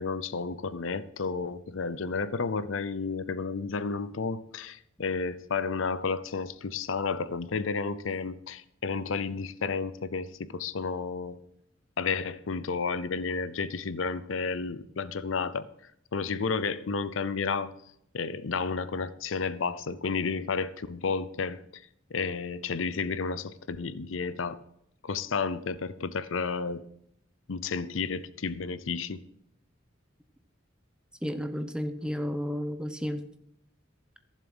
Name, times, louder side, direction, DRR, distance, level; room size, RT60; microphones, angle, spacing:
voice 1, 0.0-11.4 12.0-15.7 16.1-17.7 18.1-21.8 22.1-24.6 25.0-26.9 27.5-29.2, left 4 dB, 75° left, 0.6 m, -32 dB
voice 2, 31.2-33.3, equal, 5° right, 0.9 m, -32 dB
14.5 x 7.4 x 6.2 m
head